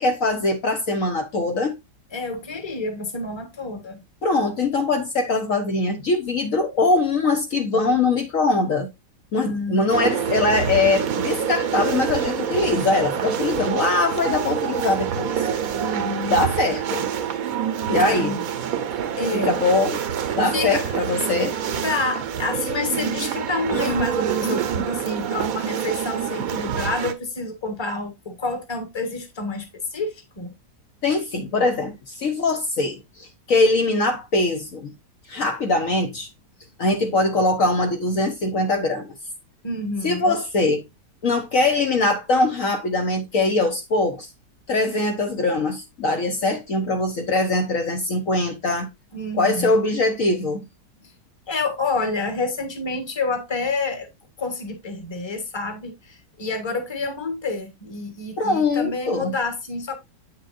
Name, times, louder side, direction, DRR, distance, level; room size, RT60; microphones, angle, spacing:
voice 1, 0.0-1.7 4.2-8.9 9.3-15.5 16.3-17.1 17.9-18.4 19.3-20.0 20.4-21.5 31.0-34.9 35.3-36.3 36.8-39.1 40.0-40.8 41.2-44.3 44.7-48.9 49.3-50.7 58.4-59.3, left 2 dB, 55° left, 1.3 m, -22 dB
voice 2, 2.1-4.0 9.4-10.1 15.8-16.5 17.9-18.4 19.2-19.5 20.4-20.9 21.7-30.5 39.6-40.3 49.1-49.8 51.5-54.1 54.4-60.0, left 2 dB, 15° left, 1.4 m, -28 dB
sound 1, 9.9-27.1, right 8 dB, 65° right, 1.2 m, -26 dB
8.6 x 6.4 x 2.6 m
omnidirectional pair, 1.8 m